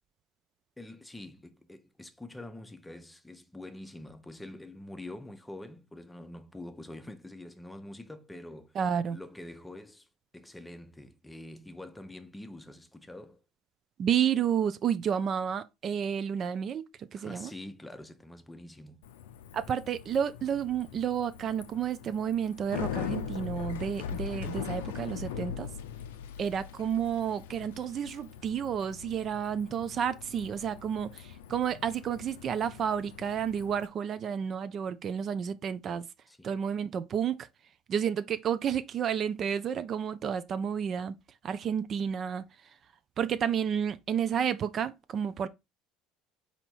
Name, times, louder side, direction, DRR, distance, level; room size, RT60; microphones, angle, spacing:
voice 1, 0.8-8.8 9.1-10.1 10.3-13.4 17.1-19.0 36.3-36.6, left 1 dB, 10° left, 0.7 m, -45 dB
voice 2, 8.8-9.2 14.0-17.5 19.5-25.7 26.4-36.1 36.4-37.5 37.9-41.1 41.4-42.4 43.2-45.5, right 8 dB, 45° right, 0.4 m, -31 dB
Bicycle, 19.0-33.9, left 8 dB, 80° left, 0.4 m, -41 dB
4.0 x 2.8 x 4.4 m
hypercardioid pair, 75°, 0 cm